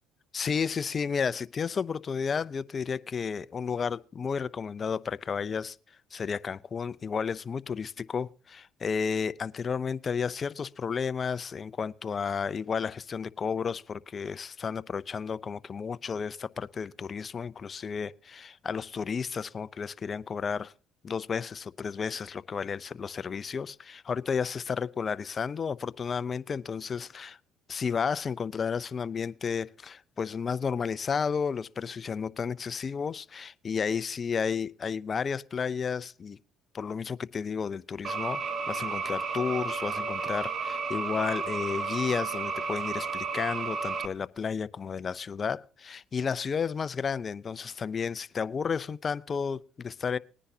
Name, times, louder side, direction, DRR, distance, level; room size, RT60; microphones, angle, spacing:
voice 1, 0.3-5.8 6.1-20.7 21.0-27.4 27.7-36.4 36.7-50.2, left 6 dB, 40° left, 0.5 m, -32 dB
sound 1, 38.0-44.1, right 4 dB, 40° right, 1.2 m, -32 dB
20.0 x 10.0 x 2.8 m
supercardioid pair, 80°, 0 cm